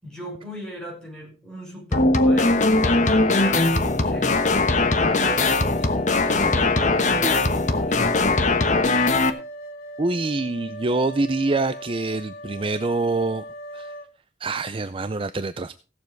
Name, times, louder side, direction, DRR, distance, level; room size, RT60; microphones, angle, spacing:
voice 1, 0.0-4.5 4.8-5.9 6.2-8.2, equal, 5° left, 5.9 m, -37 dB
sound 1, 1.9-9.3, left 2 dB, 45° left, 1.1 m, -20 dB
sound 2, 4.3-14.1, right 1 dB, 60° left, 1.9 m, -39 dB
voice 2, 10.0-13.4 13.7-13.9 14.4-15.8, right 3 dB, 30° right, 0.5 m, -25 dB
17.0 x 7.2 x 4.6 m
head